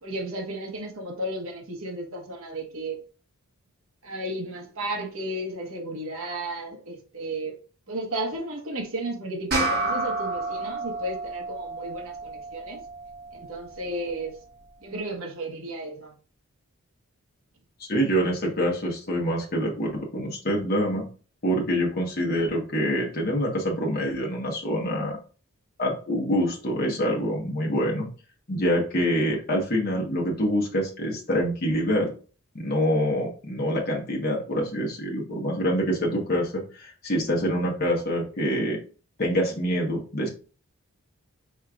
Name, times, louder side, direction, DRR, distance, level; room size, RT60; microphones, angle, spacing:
voice 1, 0.0-3.0 4.0-7.5 7.9-12.8 13.3-14.3 14.8-16.1, right 1 dB, 70° right, 1.2 m, -33 dB
sound 1, 9.5-14.3, right 2 dB, 45° right, 1.5 m, -31 dB
voice 2, 17.8-21.0 21.4-25.2 25.8-28.1 28.5-32.1 32.5-38.8 39.2-40.3, equal, 40° left, 1.2 m, -26 dB
4.5 x 4.4 x 2.4 m
head